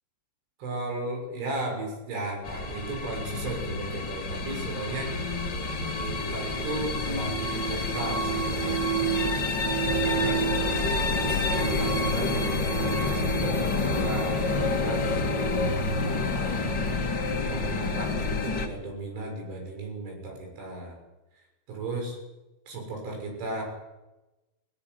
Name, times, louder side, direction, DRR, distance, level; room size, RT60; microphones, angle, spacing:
voice 1, 0.6-5.1 6.1-8.9 9.9-10.5 11.1-15.1 16.0-16.7 17.5-21.0 21.7-22.2 22.7-23.6, right 2 dB, 70° right, 2 dB, 9.1 m, -35 dB
sound 1, 2.4-18.7, left 1 dB, 40° left, 1.7 m, -28 dB
18.5 x 17.5 x 9.7 m, 1.0 s
omnidirectional pair, 5.7 m